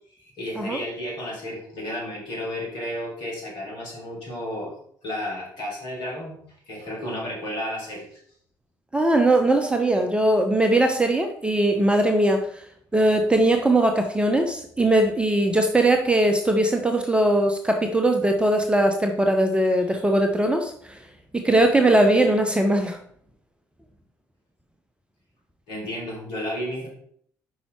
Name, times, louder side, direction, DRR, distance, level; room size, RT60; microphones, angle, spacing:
voice 1, 0.2-4.7 5.0-6.4 6.7-8.2 25.7-26.9, left 1 dB, 60° left, -3 dB, 3.1 m, -32 dB
voice 2, 8.9-12.5 12.9-21.0 21.3-23.0, right 1 dB, 10° right, 5 dB, 0.8 m, -20 dB
5.5 x 4.7 x 4.6 m, 0.63 s
figure-of-eight pair, 50°, 10 cm